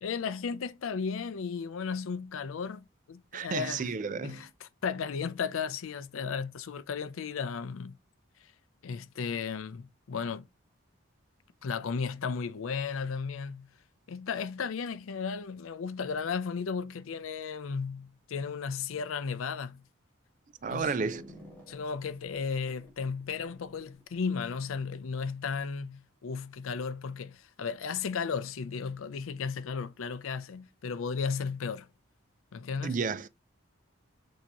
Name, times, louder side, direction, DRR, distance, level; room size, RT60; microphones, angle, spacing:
voice 1, 0.0-3.9 4.2-8.0 8.8-10.5 11.6-13.7 14.1-19.8 20.7-20.9 21.7-31.9 32.5-33.0, left 5 dB, 80° left, 0.5 m, -35 dB
voice 2, 3.3-4.5 20.6-21.3 32.8-33.3, right 5 dB, 40° right, 0.3 m, -32 dB
sound 1, 20.6-25.2, equal, 10° left, 1.4 m, -54 dB
6.5 x 2.8 x 2.9 m
head